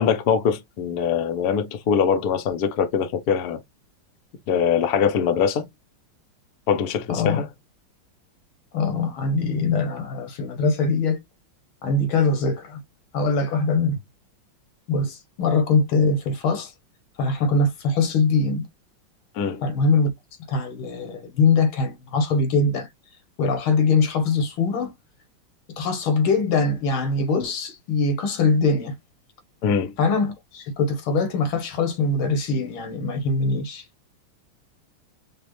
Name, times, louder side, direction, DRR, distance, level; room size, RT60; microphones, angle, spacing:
voice 1, 0.0-3.6 4.5-5.7 6.7-7.5 19.4-19.6 29.6-30.0, left 7 dB, 60° left, 1.1 m, -22 dB
voice 2, 7.1-7.4 8.7-11.2 11.8-12.8 13.1-14.0 14.9-16.7 17.2-18.7 19.6-20.1 20.5-22.9 23.4-24.9 25.8-29.0 30.0-33.9, left 3 dB, 80° left, 2.0 m, -22 dB
5.0 x 2.5 x 3.1 m
omnidirectional pair, 2.3 m